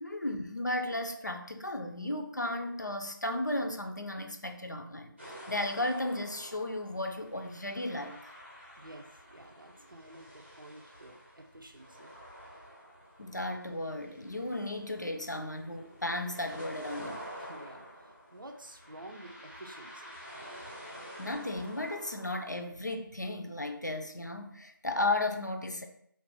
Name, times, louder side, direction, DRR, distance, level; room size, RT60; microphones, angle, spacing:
voice 1, 0.0-8.3 13.2-17.3 21.2-25.9, left 2 dB, 55° left, 5 dB, 0.3 m, -35 dB
sound 1, 5.2-22.7, equal, 30° right, 0.7 m, -49 dB
voice 2, 8.8-12.2 17.4-20.1, right 1 dB, 70° right, 4 dB, 0.5 m, -50 dB
2.4 x 2.1 x 3.8 m, 0.68 s
figure-of-eight pair, 175°, 12 cm